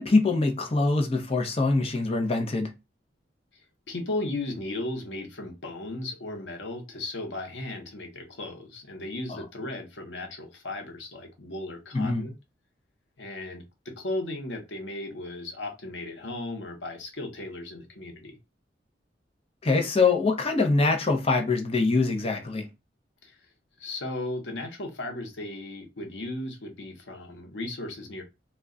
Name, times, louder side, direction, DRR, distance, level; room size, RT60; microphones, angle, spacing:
voice 1, 0.0-2.7 9.3-9.4 11.9-12.3 19.6-22.7, left 3 dB, 35° left, 0.6 m, -24 dB
voice 2, 3.9-12.3 13.2-18.4 23.2-23.4 23.8-28.2, left 2 dB, 90° left, 0.8 m, -36 dB
2.3 x 2.2 x 3.6 m
head